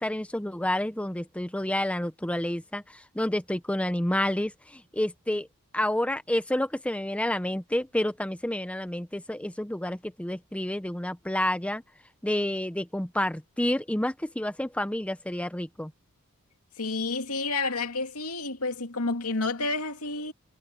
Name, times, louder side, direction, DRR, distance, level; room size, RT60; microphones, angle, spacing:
voice 1, 0.0-5.5 5.7-11.8 12.2-15.9, left 1 dB, 5° left, 0.7 m, -29 dB
voice 2, 16.8-20.3, left 3 dB, 80° left, 2.5 m, -30 dB
head